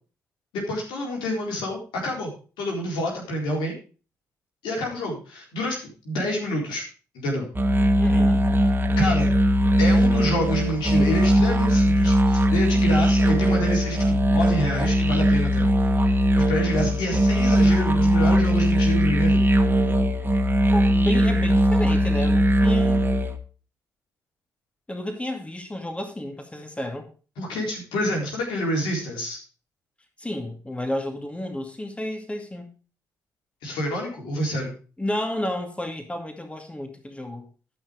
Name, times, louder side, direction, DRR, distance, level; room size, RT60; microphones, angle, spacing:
voice 1, 0.5-2.3 2.6-3.7 4.6-6.8 7.1-7.5 9.0-9.3 9.8-15.7 16.0-19.4 27.4-29.4 33.6-34.8, equal, 80° left, 4.0 m, -28 dB
didge drone-rhythms, 7.5-23.4, equal, 25° right, 2.1 m, -20 dB
voice 2, 8.0-8.4 20.7-23.1 24.9-27.1 30.2-32.7 35.0-37.5, left 1 dB, 15° left, 2.3 m, -31 dB
12.5 x 5.9 x 5.1 m
hypercardioid pair, 45°, 8 cm